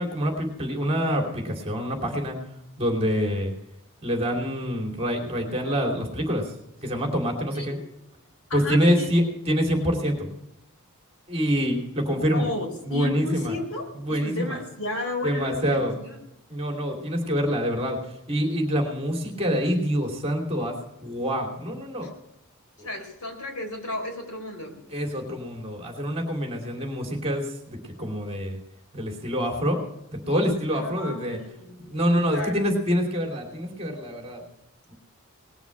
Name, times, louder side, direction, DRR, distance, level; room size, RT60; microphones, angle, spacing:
voice 1, 0.0-2.4 2.8-3.5 4.0-6.4 6.8-7.8 8.5-10.3 11.3-12.5 12.8-13.5 14.0-14.6 15.2-15.9 16.5-18.0 18.3-20.8 21.0-22.1 22.8-22.9 24.9-28.6 28.9-29.8 30.1-31.4 31.9-34.4 34.9-35.0, equal, 30° right, 2 dB, 2.8 m, -26 dB
voice 2, 8.5-9.1 12.3-16.2 22.0-22.1 22.8-24.8 30.7-32.5, left 2 dB, 75° left, 2 dB, 4.3 m, -34 dB
19.5 x 7.1 x 7.7 m, 0.89 s
head